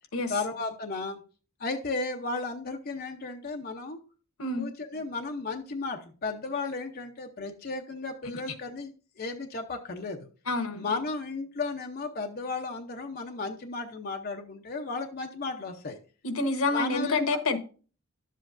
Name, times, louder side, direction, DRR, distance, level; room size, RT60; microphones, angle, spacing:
voice 1, 0.3-1.2 1.6-4.0 4.6-8.9 9.2-10.3 10.7-16.0 16.7-17.4, left 3 dB, 45° left, 4 dB, 0.7 m, -34 dB
voice 2, 10.5-10.8 16.2-17.6, left 2 dB, 80° left, 8 dB, 1.1 m, -27 dB
10.5 x 7.5 x 2.5 m, 0.37 s
head